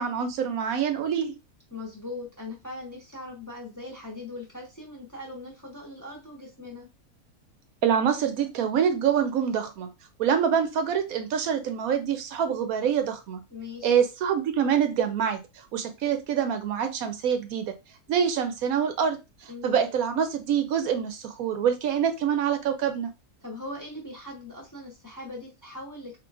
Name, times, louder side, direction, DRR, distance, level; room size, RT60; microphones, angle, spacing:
voice 1, 0.0-1.3 7.8-9.9 10.2-13.4 13.8-15.4 15.7-17.7 18.1-23.1, right 8 dB, 75° right, 8 dB, 1.0 m, -25 dB
voice 2, 1.7-6.9 13.5-14.0 19.5-19.9 23.4-26.2, left 2 dB, 15° left, -2 dB, 0.9 m, -40 dB
3.8 x 3.1 x 2.4 m, 0.25 s
omnidirectional pair, 1.5 m